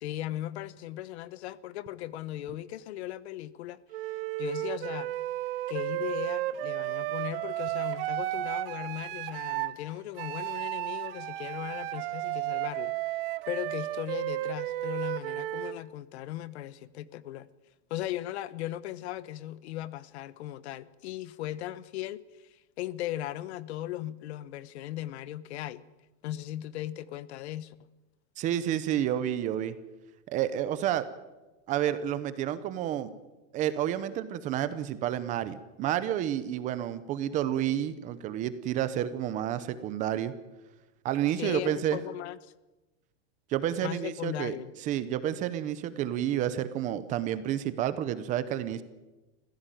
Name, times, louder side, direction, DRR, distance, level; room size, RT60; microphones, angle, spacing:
voice 1, 0.0-3.8 4.4-5.1 5.7-12.9 13.5-17.5 17.9-25.8 26.2-27.7 41.4-42.5 43.8-44.7, left 14 dB, 60° left, 1.1 m, -37 dB
Wind instrument woodwind instrument, 3.9-9.8 10.2-15.8, right 16 dB, 50° right, 1.1 m, -33 dB
voice 2, 28.4-29.7 30.3-31.0 31.7-33.1 33.5-40.3 41.0-42.0 43.5-44.5 44.8-48.8, right 11 dB, 20° right, 0.7 m, -30 dB
26.5 x 16.0 x 9.1 m
supercardioid pair, 180°, 37 cm